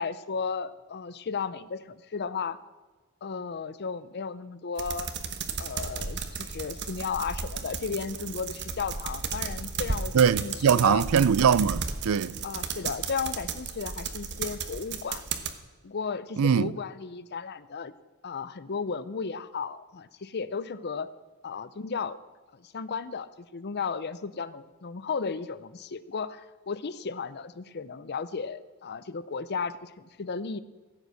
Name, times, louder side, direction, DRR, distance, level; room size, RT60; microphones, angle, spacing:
voice 1, 0.0-2.6 3.2-5.1 5.6-10.1 10.4-11.0 12.4-15.2 15.8-17.9 18.2-21.1 21.4-22.2 22.5-30.6, left 5 dB, 50° left, 0.6 m, -34 dB
sound 1, 4.8-15.5, right 5 dB, 50° right, 1.1 m, -34 dB
voice 2, 10.1-12.4 16.4-16.7, right 7 dB, 70° right, 0.4 m, -22 dB
15.5 x 8.1 x 6.4 m
head